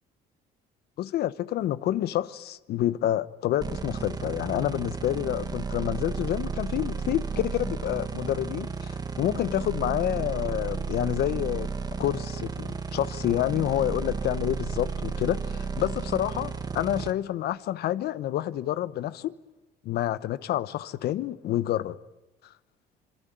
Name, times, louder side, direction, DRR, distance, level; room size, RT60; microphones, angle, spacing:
voice 1, 1.0-11.7 12.0-19.3 19.8-22.0, left 13 dB, 70° left, 1.1 m, -28 dB
sound 1, 3.6-17.1, right 5 dB, 25° right, 1.5 m, -33 dB
26.0 x 24.0 x 9.3 m
cardioid pair, 110°, 17 cm